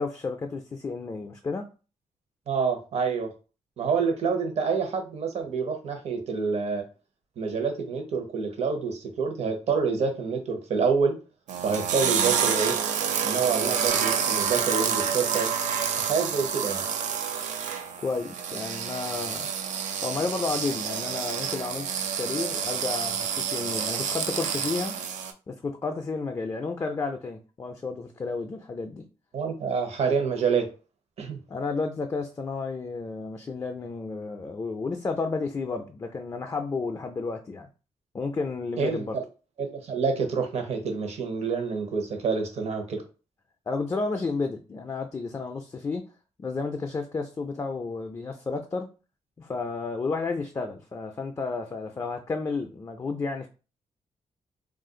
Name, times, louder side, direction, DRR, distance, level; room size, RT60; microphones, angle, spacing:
voice 1, 0.0-1.7 18.0-19.5 20.0-24.9 25.5-29.0 31.5-37.7 38.1-39.2 43.7-46.1 46.4-48.9 49.4-53.5, left 4 dB, 25° left, 0.4 m, -32 dB
voice 2, 2.5-3.3 3.8-6.8 7.4-11.1 11.6-12.9 13.2-15.5 16.0-16.8 29.3-30.7 31.2-31.4 38.8-39.2 39.6-43.0, right 5 dB, 60° right, 0.9 m, -27 dB
sound 1, 11.5-25.3, right 7 dB, 90° right, 0.4 m, -28 dB
2.5 x 2.3 x 3.7 m
cardioid pair, 110°, 12 cm